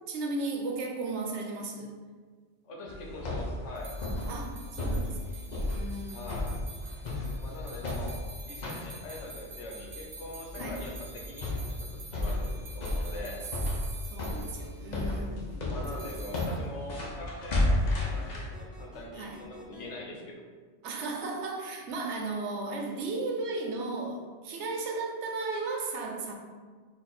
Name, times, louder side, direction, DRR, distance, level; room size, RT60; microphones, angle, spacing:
voice 1, 0.1-1.9 4.3-6.5 10.6-10.8 14.1-15.6 16.0-16.3 19.2-19.4 20.8-26.3, right 3 dB, 75° right, 2 dB, 0.9 m, -35 dB
voice 2, 2.6-4.0 6.1-6.6 7.4-13.4 15.7-20.3, left 1 dB, 80° left, -1 dB, 1.1 m, -43 dB
sound 1, 2.9-18.5, left 1 dB, 45° left, 0.7 m, -33 dB
sound 2, 3.8-14.9 15.8-16.5, right 3 dB, 60° right, 0.5 m, -49 dB
sound 3, 17.7-19.8, right 1 dB, ahead, 0.3 m, -52 dB
4.1 x 2.5 x 4.1 m, 1.5 s
omnidirectional pair, 1.2 m